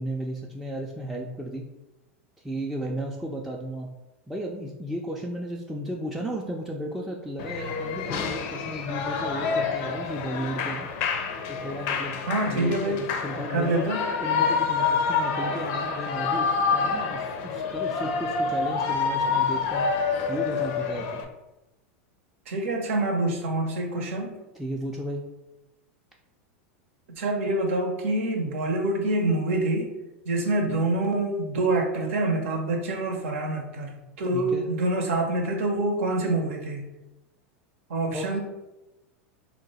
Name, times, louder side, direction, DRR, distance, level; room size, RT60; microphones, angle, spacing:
voice 1, 0.0-1.7 2.4-3.9 4.3-10.9 11.5-12.2 12.5-13.9 14.2-21.2 24.5-25.3 34.3-34.6 38.1-38.4, equal, 5° right, -2 dB, 0.4 m, -34 dB
Shout / Cheering, 7.4-21.2, left 5 dB, 60° left, 0.5 m, -27 dB
voice 2, 12.3-13.0 13.5-14.0 22.5-24.3 27.1-29.9 30.3-36.9 37.9-38.4, right 2 dB, 75° right, 3 dB, 0.7 m, -26 dB
2.9 x 2.2 x 4.0 m, 0.99 s
hypercardioid pair, 100°, 7 cm